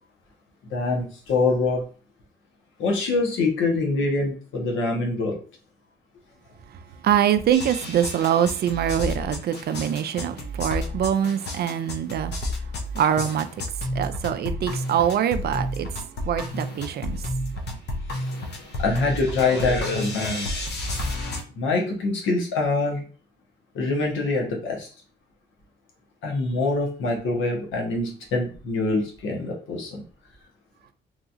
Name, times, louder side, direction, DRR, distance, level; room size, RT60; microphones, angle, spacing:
voice 1, 0.7-1.8 2.8-5.4 18.8-20.4 21.6-23.1 23.7-24.9 26.2-30.0, left 3 dB, 80° left, 1.0 m, -25 dB
voice 2, 6.7-12.3 12.6-13.6 13.9-17.3, right 9 dB, 55° right, 0.4 m, -24 dB
sound 1, 7.5-21.4, left 1 dB, 60° left, 0.8 m, -31 dB
3.0 x 2.7 x 2.5 m
cardioid pair, 90°, 20 cm